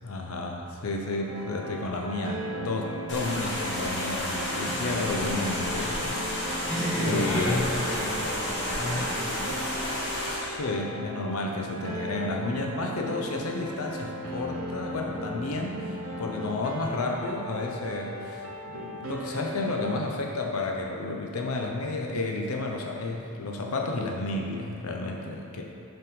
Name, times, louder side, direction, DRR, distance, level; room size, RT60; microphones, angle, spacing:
voice 1, 0.0-6.7 7.0-7.7 10.4-25.6, left 2 dB, 75° left, 1 dB, 0.6 m, -31 dB
sound 1, 1.3-20.0, equal, 65° right, 0.9 m, -37 dB
sound 2, 3.1-10.4, left 1 dB, 55° left, 1.5 m, -31 dB
voice 2, 6.4-9.6, equal, 5° left, -9 dB, 1.6 m, -32 dB
5.6 x 5.4 x 5.2 m, 2.9 s
head